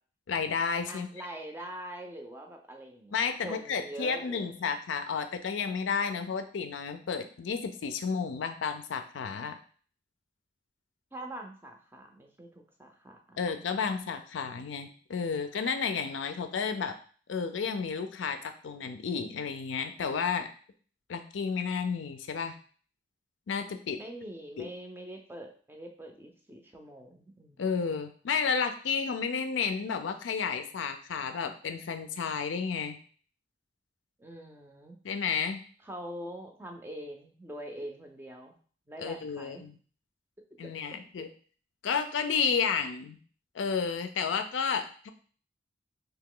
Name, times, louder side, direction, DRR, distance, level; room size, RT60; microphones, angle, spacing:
voice 1, 0.3-1.1 3.1-9.6 13.4-16.9 17.3-20.5 21.1-22.6 23.5-24.0 24.6-24.7 27.6-33.0 35.0-35.6 39.0-39.7 40.6-41.3 41.8-43.2 43.5-45.1, left 6 dB, 85° left, 8 dB, 0.4 m, -32 dB
voice 2, 0.9-4.7 11.1-13.9 24.0-27.8 34.2-35.0 35.8-38.6 38.9-39.6 40.6-41.0, right 1 dB, 10° right, 3 dB, 0.5 m, -44 dB
2.9 x 2.9 x 3.8 m, 0.43 s
head